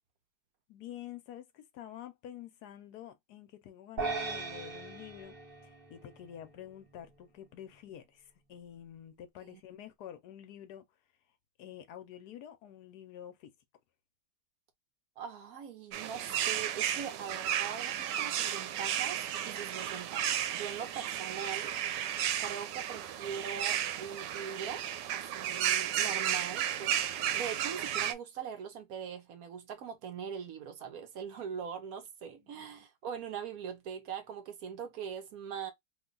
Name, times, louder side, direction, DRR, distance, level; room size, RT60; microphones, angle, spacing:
voice 1, 0.7-10.8 11.6-13.5 32.4-32.6, left 10 dB, 75° left, 1.1 m, -48 dB
sound 1, 4.0-6.5, right 3 dB, 40° right, 1.0 m, -38 dB
voice 2, 15.2-21.8 22.4-24.8 25.1-35.7, right 7 dB, 65° right, 1.0 m, -41 dB
sound 2, 15.9-28.1, right 10 dB, 90° right, 1.2 m, -33 dB
2.9 x 2.2 x 3.7 m
omnidirectional pair, 1.8 m